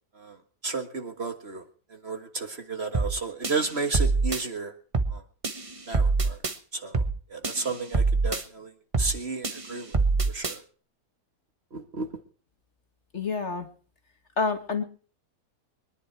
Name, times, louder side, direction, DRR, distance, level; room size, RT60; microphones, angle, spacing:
voice 1, 0.6-1.6 1.9-4.7 5.1-5.2 5.9-6.4 6.7-7.0 7.3-8.7 9.0-10.0 10.3-10.6 11.7-12.2, right 4 dB, 40° right, 7 dB, 1.8 m, -32 dB
sound 1, 2.9-3.2 3.4-4.4 4.9-5.2 5.4-6.6 6.9-7.2 7.4-8.4 8.9-9.2 9.4-10.6, right 3 dB, 25° right, 1.1 m, -25 dB
voice 2, 13.1-13.7 14.4-14.8, left 4 dB, 45° left, 7 dB, 2.0 m, -28 dB
24.0 x 11.0 x 4.6 m, 0.41 s
omnidirectional pair, 1.8 m